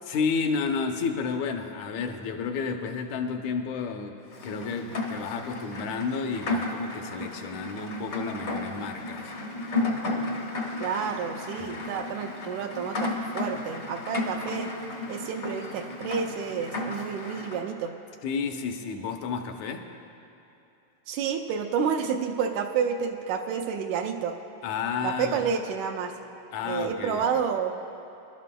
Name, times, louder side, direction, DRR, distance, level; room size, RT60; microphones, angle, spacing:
voice 1, 0.1-4.2 4.4-9.3 11.6-12.0 18.2-19.9 24.6-25.5 26.5-27.4, left 5 dB, 80° left, 5 dB, 2.1 m, -31 dB
Rain, 4.3-17.6, left 2 dB, 55° left, 0.9 m, -33 dB
voice 2, 10.8-14.7 15.1-17.9 21.1-24.4 25.0-26.1 26.7-27.8, right 7 dB, 85° right, 3 dB, 2.0 m, -29 dB
25.5 x 12.0 x 2.2 m, 2.9 s
omnidirectional pair, 3.3 m